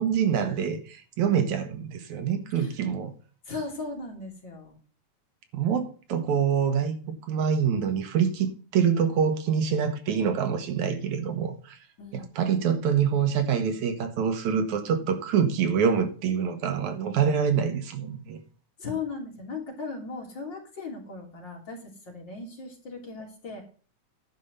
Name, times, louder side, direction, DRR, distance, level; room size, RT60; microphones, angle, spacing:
voice 1, 0.0-3.1 5.5-11.8 12.1-18.4, right 7 dB, 75° right, 2.4 m, -26 dB
voice 2, 3.5-4.8 12.0-12.3 18.8-23.6, left 4 dB, 35° left, 3.5 m, -37 dB
11.0 x 5.4 x 6.7 m
omnidirectional pair, 3.5 m